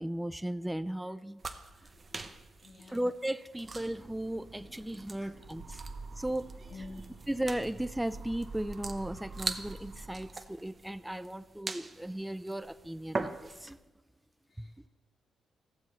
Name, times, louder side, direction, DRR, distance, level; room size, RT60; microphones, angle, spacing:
voice 1, 0.0-1.4 2.9-5.8 6.2-6.5 7.3-13.8 14.6-14.7, right 1 dB, 10° right, 13 dB, 0.4 m, -36 dB
sound 1, 1.4-13.8, right 3 dB, 45° right, 0.7 m, -43 dB
voice 2, 2.6-3.1 5.2-5.3 6.7-7.0 14.5-14.9, left 3 dB, 70° left, -3 dB, 1.2 m, -48 dB
sound 2, 3.6-10.3, right 3 dB, 70° right, 1.5 m, -54 dB
sound 3, 5.4-10.7, right 3 dB, 90° right, 1.7 m, -47 dB
14.5 x 7.3 x 3.1 m, 1.1 s
supercardioid pair, 45°, 0 cm